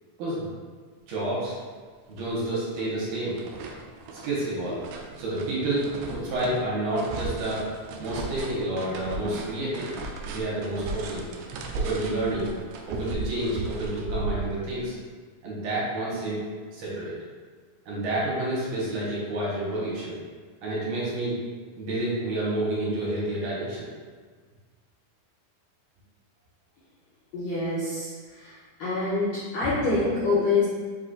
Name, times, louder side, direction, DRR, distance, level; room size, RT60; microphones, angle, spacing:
voice 1, 1.1-1.5 2.1-3.4 4.2-4.9 5.2-7.6 8.0-9.9 10.3-11.3 11.7-12.5 12.9-14.9 15.4-16.4 16.7-17.1 17.9-20.2 20.6-21.4 21.8-23.9, right 1 dB, 70° right, -6 dB, 2.2 m, -29 dB
sound 1, 1.7-1.8 2.2-2.9 3.1-14.8, right 3 dB, 90° right, 1.8 m, -36 dB
voice 2, 27.3-28.1 28.4-28.5 28.8-30.7, left 3 dB, 80° left, -9 dB, 1.6 m, -25 dB
5.6 x 2.4 x 3.9 m, 1.5 s
omnidirectional pair, 4.1 m